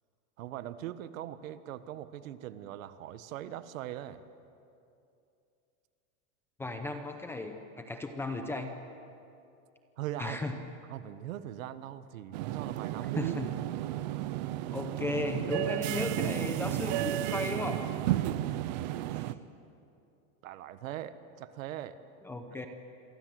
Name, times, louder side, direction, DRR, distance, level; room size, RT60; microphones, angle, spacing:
voice 1, 0.4-4.2 10.0-10.6 10.9-13.5 18.6-18.7 20.4-22.0 22.6-22.7, right 12 dB, 70° right, 12 dB, 1.4 m, -40 dB
voice 2, 6.6-8.7 10.2-10.6 13.2-13.5 14.7-17.8 19.1-19.2 22.3-22.7, left 2 dB, 5° left, 5 dB, 0.7 m, -35 dB
sound 1, 12.3-19.3, right 14 dB, 30° right, 0.5 m, -33 dB
28.0 x 23.5 x 7.8 m, 2.6 s
supercardioid pair, 175°, 42 cm